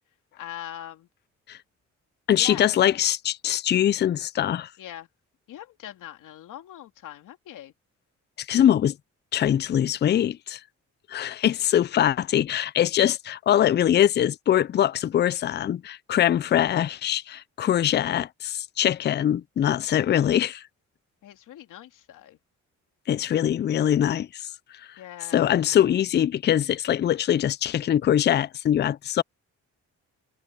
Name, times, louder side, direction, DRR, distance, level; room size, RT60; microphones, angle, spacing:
voice 1, 0.4-1.1 2.3-2.7 4.8-5.1 5.5-7.7 21.2-22.4 25.0-25.5, left 12 dB, 85° left, 3.0 m, -41 dB
voice 2, 2.3-4.7 8.5-9.0 9.3-10.6 11.1-20.6 23.1-24.5 25.3-29.2, left 11 dB, 35° left, 0.4 m, -23 dB
cardioid pair, 75°, 30 cm